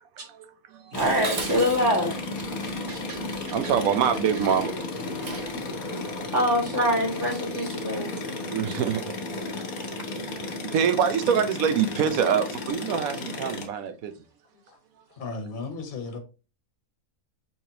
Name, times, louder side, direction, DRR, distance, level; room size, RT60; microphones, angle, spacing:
sound 1, 0.9-13.7, left 2 dB, 85° left, 1.5 m, -34 dB
Dishes pots and pans, 0.9-5.6, right 4 dB, 40° right, 0.6 m, -39 dB
voice 1, 0.9-2.1 2.9-3.0 6.3-8.1, equal, 60° right, 2.2 m, -24 dB
voice 2, 3.1-4.7 8.5-9.1 9.9-10.0 10.7-14.1, right 8 dB, 80° right, 1.1 m, -25 dB
voice 3, 15.2-16.2, left 3 dB, 40° left, 1.1 m, -34 dB
5.8 x 3.3 x 2.8 m
omnidirectional pair, 1.5 m